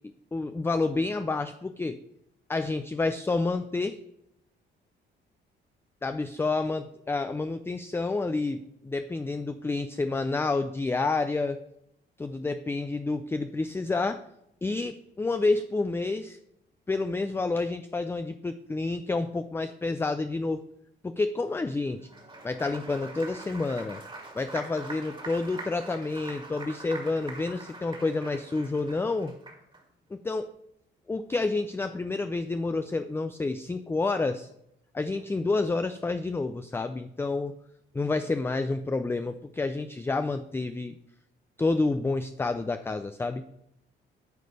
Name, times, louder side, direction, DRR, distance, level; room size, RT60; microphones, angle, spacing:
voice 1, 0.3-2.0 2.5-4.0 6.0-11.6 12.2-14.2 14.6-16.4 16.9-20.6 21.0-22.1 22.4-24.0 24.3-29.3 30.1-30.5 31.1-34.5 34.9-37.5 37.9-40.9 41.6-43.4, left 3 dB, 10° left, 10 dB, 0.4 m, -29 dB
Applause, 22.0-29.8, right 2 dB, 25° right, 1.9 m, -43 dB
9.2 x 3.3 x 6.8 m, 0.79 s
cardioid pair, 90°, 20 cm